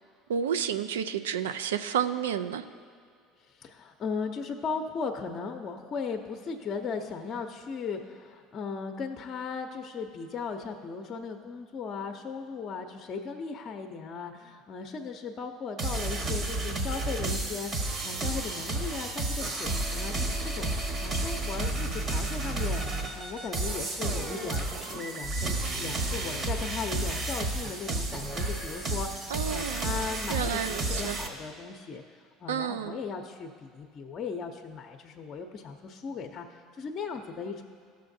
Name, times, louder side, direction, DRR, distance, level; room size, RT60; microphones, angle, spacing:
voice 1, 0.3-2.6 29.3-30.0 30.3-31.2 32.5-33.0, right 8 dB, 90° right, 11 dB, 0.3 m, -30 dB
voice 2, 3.5-20.7 21.0-32.0 32.4-37.6, left 5 dB, 45° left, 3 dB, 0.6 m, -37 dB
sound 1, 15.8-31.3, right 2 dB, 45° right, 1.2 m, -31 dB
14.5 x 6.5 x 2.7 m, 2.1 s
hypercardioid pair, 80°, 0 cm